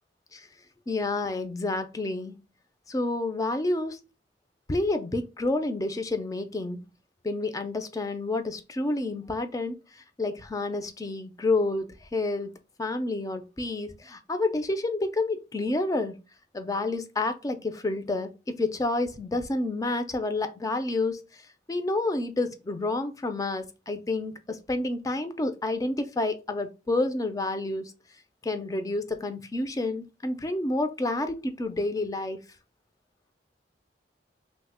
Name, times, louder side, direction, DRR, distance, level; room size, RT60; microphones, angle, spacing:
voice 1, 0.9-2.4 2.9-4.0 4.7-6.8 7.2-12.5 12.8-16.1 16.5-21.4 21.7-27.9 28.4-32.4, left 2 dB, 20° left, 0.3 m, -29 dB
3.1 x 2.1 x 3.4 m
head